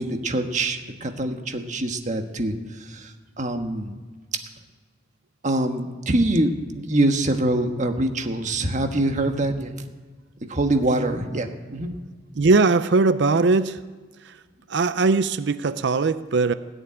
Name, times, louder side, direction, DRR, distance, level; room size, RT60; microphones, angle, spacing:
voice 1, 0.0-2.5 2.9-3.1 3.4-4.0 5.4-9.9 10.5-11.9, right 1 dB, 40° right, 5 dB, 1.4 m, -24 dB
voice 2, 12.4-13.8 14.7-16.5, right 3 dB, 65° right, 13 dB, 0.5 m, -20 dB
17.5 x 7.2 x 9.9 m, 1.4 s
head